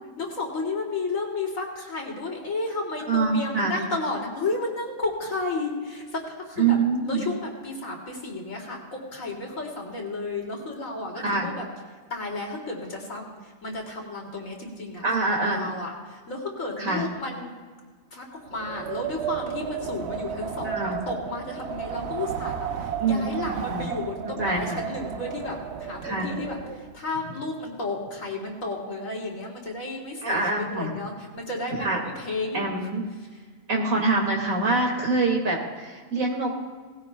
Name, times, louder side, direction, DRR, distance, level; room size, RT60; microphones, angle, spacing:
voice 1, 0.2-6.8 7.1-11.6 12.1-15.0 15.5-17.5 18.1-32.7, left 3 dB, 80° left, -1 dB, 3.2 m, -32 dB
voice 2, 3.1-3.8 6.6-7.3 11.2-11.5 15.0-15.7 16.8-17.0 20.6-21.0 23.0-23.3 23.7-23.9 24.4-24.8 26.0-26.3 30.2-31.0 31.8-32.0 32.5-33.0 33.7-36.6, right 3 dB, 90° right, -1 dB, 2.6 m, -25 dB
Wind, 18.5-26.9, right 8 dB, 60° right, 0.9 m, -33 dB
19.5 x 16.5 x 2.3 m, 1.5 s
omnidirectional pair, 1.4 m